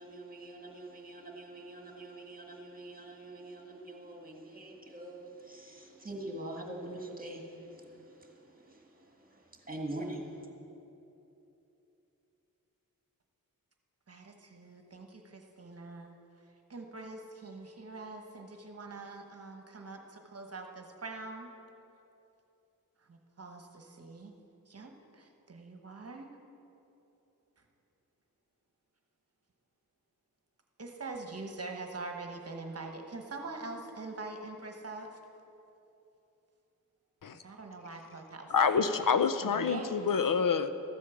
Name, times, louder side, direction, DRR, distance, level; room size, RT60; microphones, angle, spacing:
voice 1, 0.0-7.5 7.8-7.9 8.7-8.8 9.7-10.3, right 1 dB, 25° right, 1 dB, 1.7 m, -43 dB
voice 2, 14.1-16.2 16.7-21.5 23.1-24.3 24.7-26.3 30.8-35.2 37.4-38.5 39.4-39.9, right 3 dB, 45° right, 4 dB, 1.1 m, -44 dB
voice 3, 38.5-40.7, left 6 dB, 65° left, 11 dB, 0.6 m, -27 dB
13.5 x 8.4 x 7.0 m, 2.9 s
wide cardioid pair, 120°, 35 cm